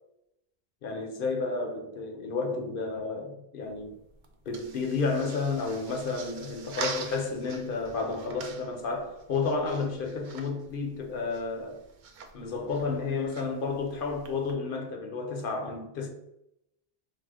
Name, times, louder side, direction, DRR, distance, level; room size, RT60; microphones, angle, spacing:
voice 1, 0.8-3.9 4.5-11.8 12.3-16.1, left 4 dB, 60° left, 0.8 m, -31 dB
sound 1, 3.6-14.5, right 5 dB, 60° right, 0.6 m, -45 dB
4.7 x 2.1 x 3.5 m
omnidirectional pair, 1.0 m